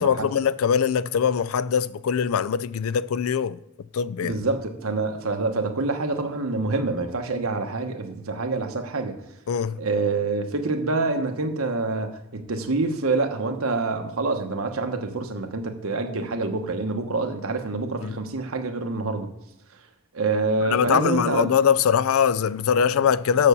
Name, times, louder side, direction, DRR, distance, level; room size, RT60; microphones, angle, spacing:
voice 1, 0.0-3.6 3.9-4.4 9.5-9.8 18.0-18.2 20.7-23.5, left 7 dB, 80° left, 0.4 m, -22 dB
voice 2, 4.2-9.2 9.8-19.3 20.1-21.5, right 3 dB, 80° right, 1.1 m, -26 dB
7.0 x 6.7 x 6.9 m
head